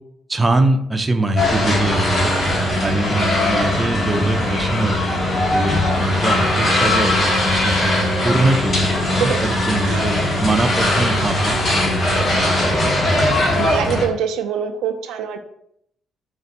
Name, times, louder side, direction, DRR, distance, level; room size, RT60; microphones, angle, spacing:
voice 1, 0.3-2.3 2.8-5.2 5.5-12.0 12.5-13.0, right 2 dB, 20° right, 5 dB, 0.5 m, -23 dB
sound 1, 1.4-14.0, left 1 dB, 45° left, 1.7 m, -19 dB
voice 2, 13.5-15.4, right 7 dB, 90° right, 6 dB, 0.4 m, -24 dB
5.3 x 2.5 x 4.0 m, 0.74 s
cardioid pair, 90°, 0 cm